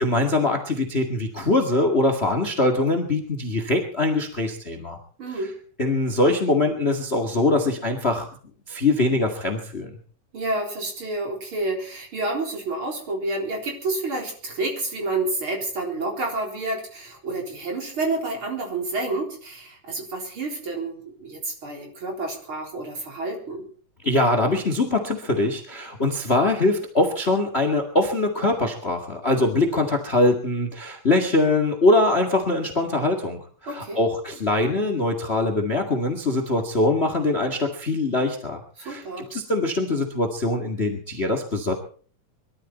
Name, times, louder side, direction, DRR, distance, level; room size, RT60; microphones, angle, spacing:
voice 1, 0.0-5.0 5.8-8.3 8.7-9.9 24.0-41.7, left 2 dB, 25° left, 6 dB, 1.7 m, -23 dB
voice 2, 5.2-5.5 10.3-23.7 33.7-34.0 38.8-39.3, right 2 dB, 45° right, 1 dB, 4.7 m, -29 dB
22.5 x 13.0 x 4.4 m, 0.43 s
omnidirectional pair, 3.4 m